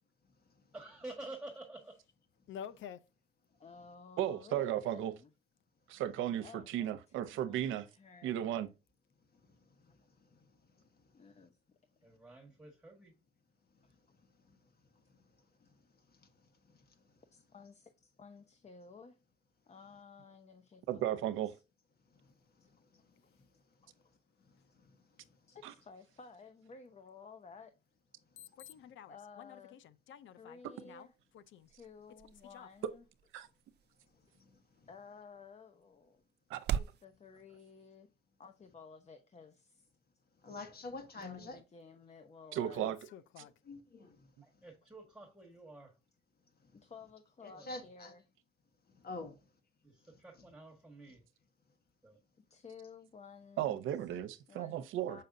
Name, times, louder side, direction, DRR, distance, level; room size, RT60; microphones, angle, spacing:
voice 1, 0.7-2.0 12.0-13.2 44.4-45.9 47.5-47.9 49.8-51.2 52.0-52.2, right 2 dB, 5° right, 1.6 m, -50 dB
voice 2, 2.5-3.0 28.4-31.1 31.3-31.7 32.5-32.7 42.8-43.5, left 9 dB, 75° left, 0.6 m, -50 dB
voice 3, 3.6-5.3 6.4-6.9 7.3-8.6 11.1-11.5 17.3-17.9 18.2-19.1 19.7-21.4 23.8-23.9 25.5-27.7 29.1-29.8 30.4-31.1 31.7-33.0 34.9-36.2 36.8-38.1 38.4-39.9 41.1-42.9 46.7-48.2 52.5-53.8 54.1-54.2 54.5-55.2, left 5 dB, 35° left, 0.8 m, -54 dB
voice 4, 4.2-5.1 5.9-7.9 8.2-8.7 20.9-21.5 25.6-25.7 30.6-30.7 33.3-33.5 36.5-36.8 42.5-43.0 53.6-55.2, right 11 dB, 90° right, 0.7 m, -35 dB
sound 1, 30.8-37.0, right 9 dB, 60° right, 0.4 m, -44 dB
voice 5, 40.4-41.6 43.6-44.1 47.4-48.1 49.0-49.3, left 3 dB, 50° left, 1.4 m, -45 dB
6.8 x 5.5 x 2.6 m
cardioid pair, 90°, 20 cm